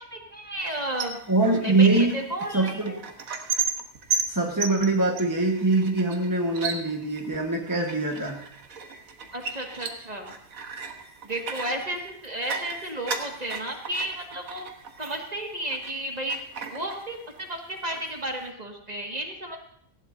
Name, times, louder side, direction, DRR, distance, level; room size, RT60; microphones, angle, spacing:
voice 1, 0.0-1.2 1.5-3.0 9.3-10.3 11.2-14.7 15.0-16.4 16.7-19.6, right 1 dB, 30° right, 1 dB, 1.9 m, -33 dB
sound 1, 0.6-16.0 16.3-17.5 17.8-18.5, right 5 dB, 85° right, 1.6 m, -35 dB
voice 2, 1.3-2.2 2.5-2.9 4.3-8.4, right 2 dB, 15° right, -1 dB, 1.3 m, -23 dB
18.5 x 15.5 x 2.7 m, 0.69 s
omnidirectional pair, 1.4 m